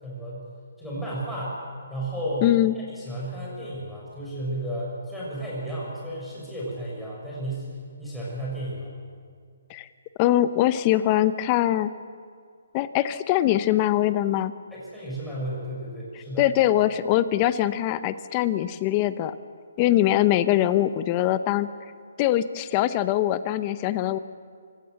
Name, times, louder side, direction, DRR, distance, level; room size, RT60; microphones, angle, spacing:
voice 1, 0.0-0.5 0.8-1.6 1.9-7.7 8.0-8.9 14.7-16.4, right 1 dB, ahead, -7 dB, 6.7 m, -33 dB
voice 2, 2.4-2.7 9.7-9.9 10.2-11.9 12.7-14.5 16.4-19.3 19.8-21.7 22.2-24.2, left 13 dB, 25° left, 14 dB, 0.7 m, -22 dB
25.0 x 16.0 x 7.9 m, 2.1 s
hypercardioid pair, 160°, 0 cm